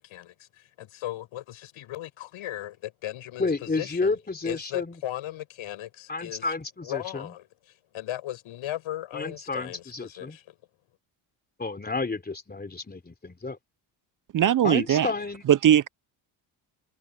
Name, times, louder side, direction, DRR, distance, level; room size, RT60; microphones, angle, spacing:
voice 1, 0.0-4.2 4.4-6.5 6.8-7.5 7.9-10.6, left 14 dB, 80° left, 8.0 m, -37 dB
voice 2, 3.4-5.0 6.1-7.3 9.1-10.4 11.6-13.6 14.6-15.4, left 3 dB, 20° left, 3.4 m, -31 dB
voice 3, 14.3-15.1 15.5-15.9, right 10 dB, 40° right, 0.6 m, -20 dB
cardioid pair, 80°, 48 cm